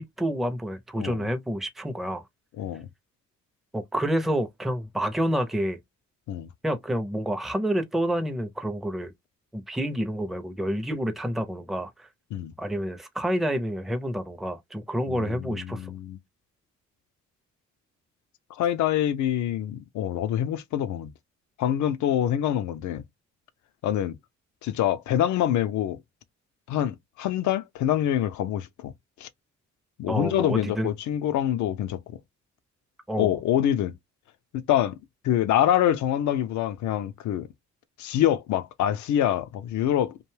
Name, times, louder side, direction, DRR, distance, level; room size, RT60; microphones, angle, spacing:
voice 1, 0.0-2.2 3.7-5.8 6.6-9.1 9.5-12.1 12.6-15.9 30.1-30.9 33.1-33.4, equal, ahead, 0.5 m, -28 dB
voice 2, 2.6-2.9 6.3-6.5 12.3-12.5 15.1-16.2 18.5-21.1 21.6-23.0 23.8-24.2 24.6-26.0 26.7-28.9 29.2-29.3 30.0-32.0 33.2-33.9 34.5-34.9 35.2-37.5 38.0-40.2, left 11 dB, 70° left, 0.5 m, -25 dB
2.6 x 2.2 x 3.1 m
cardioid pair, 90°, 30 cm